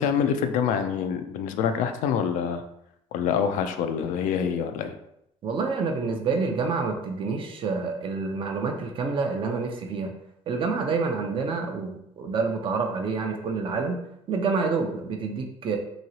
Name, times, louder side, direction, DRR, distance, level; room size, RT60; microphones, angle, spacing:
voice 1, 0.0-2.6 3.1-4.9, left 7 dB, 85° left, 8 dB, 0.4 m, -26 dB
voice 2, 5.4-10.1 10.5-14.0 14.3-15.8, right 4 dB, 45° right, 3 dB, 0.5 m, -28 dB
3.0 x 2.8 x 2.7 m, 0.78 s
cardioid pair, 125°, 13 cm